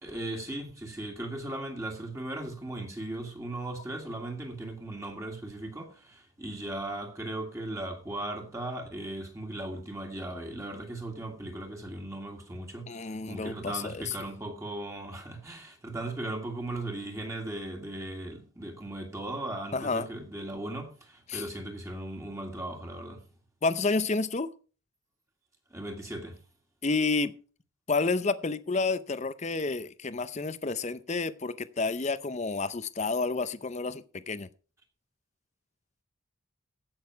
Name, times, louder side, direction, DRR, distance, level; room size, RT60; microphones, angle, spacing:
voice 1, 0.0-23.2 25.7-26.4, right 1 dB, 15° right, 1.9 m, -37 dB
voice 2, 12.9-14.1 19.7-20.1 21.3-21.5 23.6-24.5 26.8-27.3 27.9-34.5, left 3 dB, 35° left, 0.6 m, -30 dB
15.5 x 6.4 x 4.6 m
head